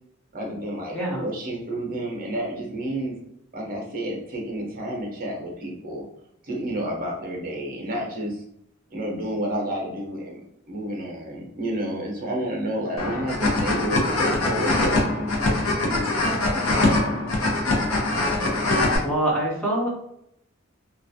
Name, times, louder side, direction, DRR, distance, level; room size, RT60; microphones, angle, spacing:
voice 1, 0.3-3.2 3.5-6.0 6.4-8.4 8.9-10.4 10.7-16.7, right 1 dB, 45° right, -1 dB, 0.6 m, -30 dB
sound 1, 13.0-19.0, left 2 dB, 80° left, 0.7 m, -23 dB
voice 2, 19.0-19.9, right 1 dB, 5° left, -4 dB, 0.6 m, -24 dB
2.3 x 2.2 x 2.6 m, 0.75 s
head